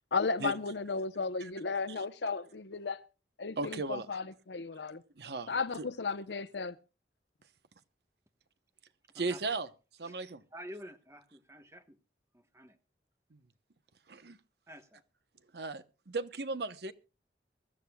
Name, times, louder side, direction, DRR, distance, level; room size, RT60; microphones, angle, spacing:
voice 1, 0.1-3.0 3.4-5.0 5.5-6.8, left 4 dB, 75° left, 0.8 m, -34 dB
voice 2, 3.6-4.1 5.2-5.9 9.1-9.7 10.0-10.4 13.3-13.4 14.1-14.4 15.5-16.9, right 3 dB, 65° right, 0.9 m, -36 dB
voice 3, 9.1-9.5 10.0-10.2 10.5-12.0 12.3-12.8 14.7-15.0, equal, 15° right, 1.2 m, -49 dB
24.0 x 13.5 x 2.3 m
head